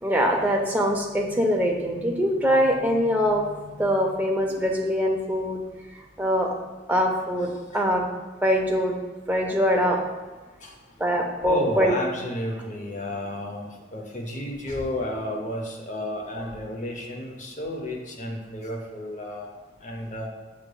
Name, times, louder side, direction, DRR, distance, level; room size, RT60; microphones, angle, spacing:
voice 1, 0.0-3.5 3.8-5.6 6.2-6.5 6.9-8.1 8.4-9.0 9.3-10.0 11.0-11.9, equal, 10° right, 0 dB, 0.4 m, -23 dB
voice 2, 11.4-20.3, left 1 dB, 40° left, 1 dB, 0.6 m, -32 dB
7.2 x 3.2 x 2.3 m, 1.3 s
head